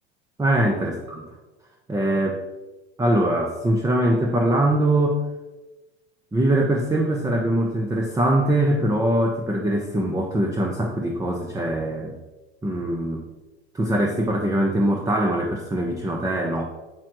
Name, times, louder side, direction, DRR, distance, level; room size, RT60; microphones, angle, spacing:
voice 1, 0.4-1.3 1.9-2.4 3.0-5.2 6.3-12.2 12.6-13.2 13.7-16.6, right 1 dB, 10° right, 1 dB, 0.8 m, -22 dB
7.7 x 6.9 x 3.0 m, 1.1 s
supercardioid pair, 105°, 33 cm